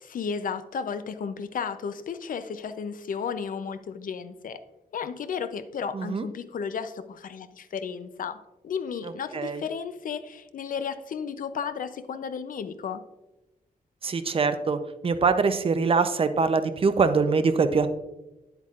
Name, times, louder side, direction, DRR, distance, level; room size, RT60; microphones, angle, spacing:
voice 1, 0.0-4.6 4.9-8.4 8.6-13.0, left 6 dB, 70° left, 11 dB, 0.6 m, -33 dB
voice 2, 5.9-6.3 9.3-9.6 14.0-17.9, right 4 dB, 40° right, 10 dB, 0.5 m, -23 dB
9.3 x 8.0 x 2.4 m, 0.98 s
wide cardioid pair, 135°, 15 cm